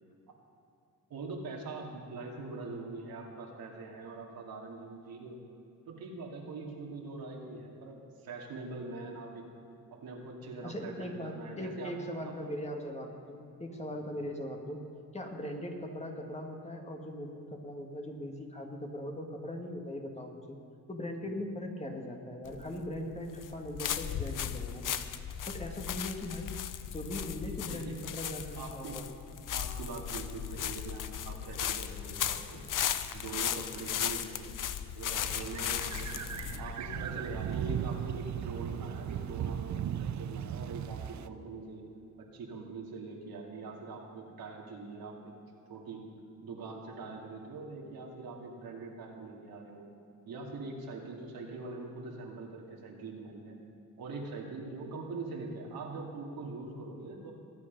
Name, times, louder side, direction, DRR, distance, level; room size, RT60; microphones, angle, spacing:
voice 1, 1.1-5.4 5.9-9.5 9.9-12.0 12.2-12.3 14.0-14.1 27.6-28.0 28.6-29.1 29.5-32.7 33.1-34.5 34.9-36.2 36.6-41.8 42.2-45.4 45.7-46.0 46.4-49.8 50.2-53.5 54.0-57.3, right 3 dB, 75° right, -1 dB, 2.7 m, -43 dB
voice 2, 10.6-14.8 15.1-20.6 20.9-24.8 25.5-26.5 26.9-29.1, left 1 dB, 20° left, 2 dB, 2.0 m, -40 dB
sound 1, 22.5-38.0, left 9 dB, 60° left, 0.8 m, -37 dB
sound 2, 35.2-41.3, right 9 dB, 55° right, 0.6 m, -37 dB
22.0 x 8.7 x 5.5 m, 2.6 s
cardioid pair, 80°, 36 cm